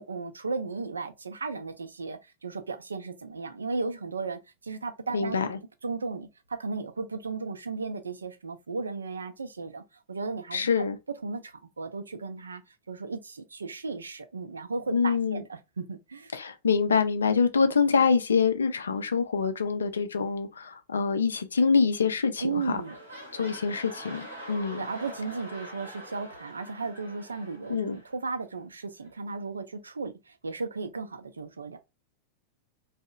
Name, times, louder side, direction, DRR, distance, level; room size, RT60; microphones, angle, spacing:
voice 1, 0.0-5.4 5.8-6.3 6.6-10.7 11.2-12.6 12.9-16.3 22.4-22.9 24.7-31.8, right 4 dB, 75° right, 0.4 m, -35 dB
voice 2, 5.1-5.6 10.5-11.0 14.9-15.4 16.3-22.8 23.3-24.9 27.7-28.0, left 5 dB, 70° left, 0.4 m, -25 dB
sound 1, 22.1-22.3 22.5-28.4 29.0-29.1, right 1 dB, 90° right, 0.8 m, -45 dB
2.7 x 2.0 x 2.3 m
figure-of-eight pair, 90°, 0 cm